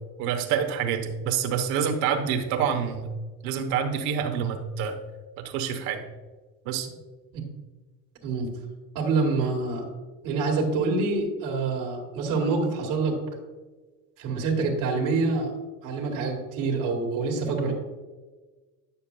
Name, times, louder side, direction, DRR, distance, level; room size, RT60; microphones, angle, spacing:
voice 1, 0.2-3.1 3.4-5.0 5.4-6.0 6.7-6.9, right 7 dB, 85° right, 4 dB, 1.0 m, -27 dB
voice 2, 8.9-9.8 10.2-13.2 14.2-15.5 15.8-17.7, right 3 dB, 65° right, 0 dB, 1.7 m, -26 dB
10.0 x 6.9 x 2.2 m, 1.3 s
cardioid pair, 115°, 35 cm